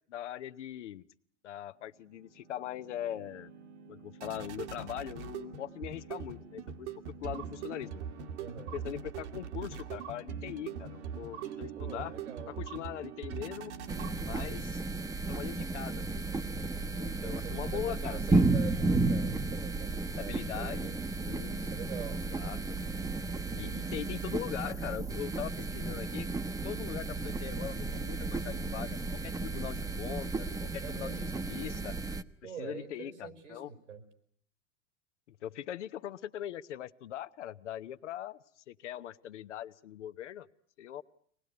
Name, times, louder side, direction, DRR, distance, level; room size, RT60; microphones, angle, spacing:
voice 1, 0.1-1.1 1.4-3.5 3.9-6.9 7.2-8.0 8.7-12.1 12.5-13.7 14.2-14.8 15.3-16.2 16.9-18.4 20.2-21.7 22.3-22.8 23.5-26.3 26.6-32.0 32.4-33.7 35.3-40.5 40.8-41.0, left 11 dB, 75° left, 13 dB, 1.0 m, -41 dB
sound 1, 2.1-14.9, right 7 dB, 70° right, 2.1 m, -42 dB
voice 2, 8.4-8.7 11.8-12.5 16.4-16.9 17.2-21.0 21.5-22.2 30.8-31.3 32.4-34.0, right 7 dB, 85° right, 8 dB, 4.4 m, -45 dB
sound 2, 13.9-32.2, right 3 dB, 10° right, 0.9 m, -33 dB
24.0 x 19.5 x 9.5 m, 0.66 s
hypercardioid pair, 95°, 36 cm